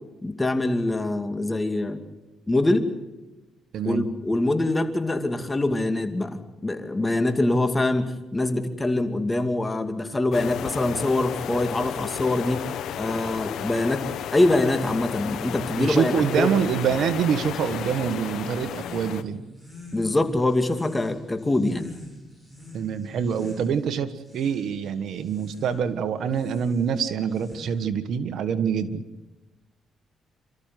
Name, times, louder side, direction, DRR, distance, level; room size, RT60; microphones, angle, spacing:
voice 1, 0.2-2.0 2.5-2.9 3.8-12.6 13.0-14.1 14.3-16.5 19.9-21.9, left 2 dB, 15° left, 7 dB, 2.5 m, -24 dB
voice 2, 3.7-4.1 15.8-19.4 22.7-29.0, right 7 dB, 70° right, 11 dB, 1.5 m, -25 dB
sound 1, 10.3-19.2, left 9 dB, 75° left, 1.3 m, -33 dB
sound 2, 16.5-28.0, left 1 dB, 10° right, 8.0 m, -45 dB
28.0 x 14.0 x 9.3 m, 1.1 s
cardioid pair, 90°, 0 cm